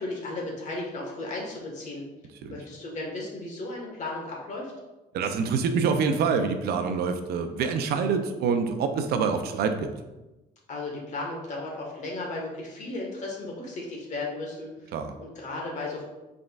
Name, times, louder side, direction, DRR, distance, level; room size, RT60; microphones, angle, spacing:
voice 1, 0.0-2.0 2.5-4.7 10.7-14.9 15.2-16.0, left 2 dB, 45° left, -1 dB, 1.4 m, -35 dB
voice 2, 5.1-9.9 14.9-15.2, right 5 dB, 70° right, 7 dB, 0.5 m, -26 dB
5.3 x 3.7 x 2.4 m, 1.1 s
cardioid pair, 110°, 17 cm